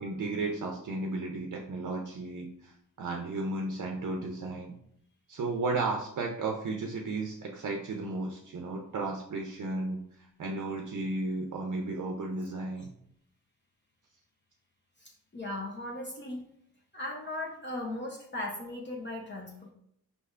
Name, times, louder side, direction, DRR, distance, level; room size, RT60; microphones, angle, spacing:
voice 1, 0.0-4.8 5.3-10.0 10.4-12.9, right 3 dB, 60° right, 1 dB, 0.6 m, -34 dB
voice 2, 15.0-16.4 16.9-19.7, left 1 dB, 30° left, -1 dB, 0.7 m, -38 dB
5.2 x 3.3 x 2.4 m, 0.70 s
wide cardioid pair, 90°, 36 cm